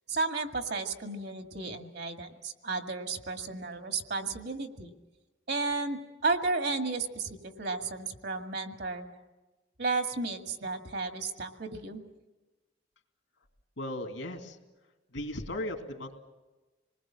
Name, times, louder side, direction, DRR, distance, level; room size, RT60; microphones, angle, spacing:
voice 1, 0.1-4.9 5.5-9.1 9.8-12.0, right 3 dB, 60° right, 6 dB, 1.9 m, -33 dB
voice 2, 13.8-14.6 15.1-16.2, left 1 dB, 75° left, 4 dB, 2.8 m, -37 dB
27.0 x 20.5 x 7.4 m, 1.2 s
head